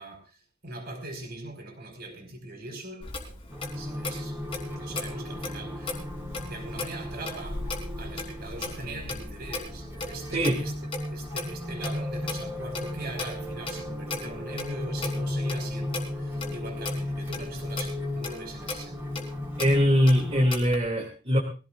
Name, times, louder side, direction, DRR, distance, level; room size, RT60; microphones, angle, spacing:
voice 1, 0.0-6.0 6.4-10.7 11.1-19.3, right 2 dB, 50° right, 4.9 m, -41 dB
Clock, 3.0-20.8, left 3 dB, 30° left, 3.6 m, -38 dB
sound 1, 3.5-20.5, left 1 dB, 10° right, 4.1 m, -35 dB
voice 2, 19.6-21.4, equal, 35° right, 2.7 m, -22 dB
22.0 x 16.5 x 2.5 m
head